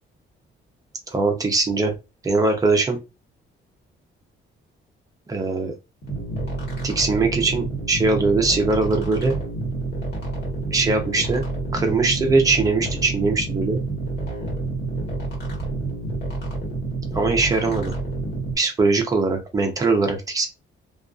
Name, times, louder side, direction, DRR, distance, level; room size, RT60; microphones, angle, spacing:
voice 1, 1.1-1.9 2.2-3.0 5.3-5.7 6.8-9.4 10.7-11.4 11.7-13.8 17.1-17.9 18.6-20.5, right 3 dB, 15° right, 3 dB, 0.5 m, -21 dB
sound 1, 6.0-18.6, right 2 dB, 50° left, 1.4 m, -28 dB
2.5 x 2.3 x 2.3 m, 0.26 s
cardioid pair, 175°, 21 cm